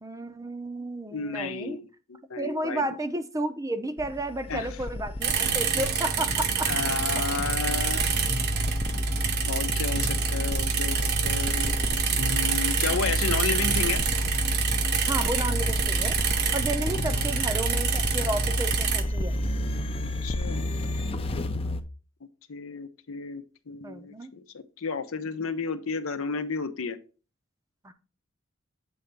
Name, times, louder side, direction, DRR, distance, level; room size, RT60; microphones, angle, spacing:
voice 1, 0.0-1.8 2.4-6.7 15.1-16.2 16.5-19.4 23.8-24.3 27.8-27.9, right 1 dB, 15° right, 9 dB, 0.6 m, -32 dB
voice 2, 1.1-2.8 4.5-4.7 6.7-8.0 9.4-11.0 11.2-11.7 12.2-14.0 20.0-20.7 22.5-27.0, left 5 dB, 80° left, 9 dB, 0.8 m, -32 dB
sound 1, 4.0-21.8, left 1 dB, 30° left, 0.5 m, -30 dB
sound 2, 5.2-19.0, right 7 dB, 55° right, 0.8 m, -28 dB
7.9 x 3.4 x 5.2 m, 0.34 s
head